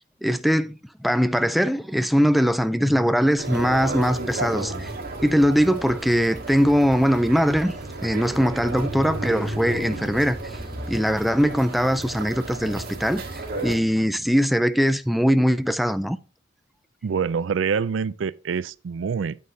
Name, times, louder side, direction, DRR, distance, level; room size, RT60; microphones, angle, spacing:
voice 1, 0.2-4.9 5.2-7.7 8.0-10.5 10.9-16.2, equal, ahead, 0.4 m, -21 dB
sound 1, 3.4-13.7, right 2 dB, 55° right, 2.1 m, -33 dB
voice 2, 17.0-19.4, right 6 dB, 75° right, 0.4 m, -26 dB
9.3 x 8.6 x 2.7 m
head